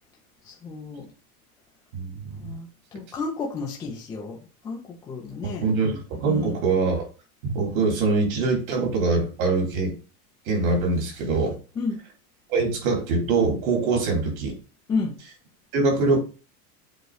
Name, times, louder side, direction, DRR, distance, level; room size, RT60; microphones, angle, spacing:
voice 1, 0.4-1.1 2.4-5.6 6.2-6.6 11.8-12.0 14.9-15.1, left 4 dB, 5° left, -3 dB, 0.3 m, -31 dB
voice 2, 1.9-2.6 5.4-7.1 7.4-9.9 10.4-11.6 12.5-14.5 15.7-16.2, right 3 dB, 65° right, 1 dB, 3.4 m, -23 dB
7.9 x 3.1 x 4.7 m, 0.35 s
supercardioid pair, 165°, 46 cm